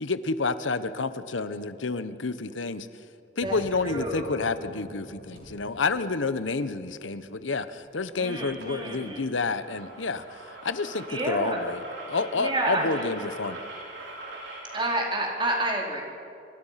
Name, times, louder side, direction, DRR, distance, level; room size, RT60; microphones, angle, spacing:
voice 1, 0.0-2.9 3.4-11.8 12.1-13.6, left 3 dB, 85° left, 13 dB, 1.0 m, -29 dB
sound 1, 3.4-6.5, equal, 55° right, 7.1 m, -46 dB
voice 2, 3.8-4.4 8.2-9.3 11.1-11.6 12.4-13.2 14.7-16.0, right 1 dB, 25° right, -1 dB, 4.0 m, -29 dB
sound 2, 5.4-5.6 8.0-8.1 8.4-8.7 9.0-14.9, right 2 dB, 75° right, 6.4 m, -42 dB
27.0 x 25.0 x 5.8 m, 2.6 s
head